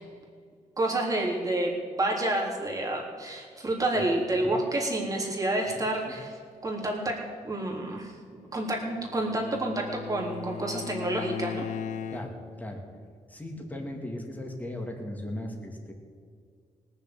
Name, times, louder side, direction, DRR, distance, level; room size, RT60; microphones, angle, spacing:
voice 1, 0.8-6.3 6.6-8.2 8.5-11.7, right 1 dB, 30° right, -1 dB, 3.6 m, -29 dB
Bowed string instrument, 8.6-12.6, left 7 dB, 75° left, 1.1 m, -38 dB
voice 2, 12.1-12.8 13.3-15.9, left 1 dB, 15° left, 1 dB, 2.9 m, -37 dB
19.0 x 7.2 x 8.0 m, 2.1 s
cardioid pair, 80°, 12 cm